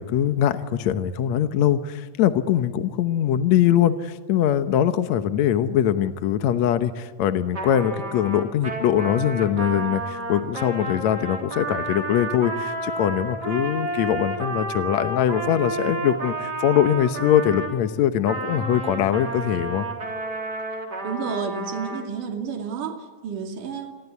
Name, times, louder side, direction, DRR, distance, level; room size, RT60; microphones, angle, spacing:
voice 1, 0.0-19.9, left 10 dB, 65° left, 10 dB, 2.2 m, -22 dB
Trumpet, 7.5-17.7 18.2-22.0, right 2 dB, 30° right, 4.3 m, -31 dB
voice 2, 21.0-23.9, right 6 dB, 75° right, 4 dB, 4.1 m, -31 dB
29.0 x 22.5 x 8.3 m, 1.5 s
omnidirectional pair, 3.7 m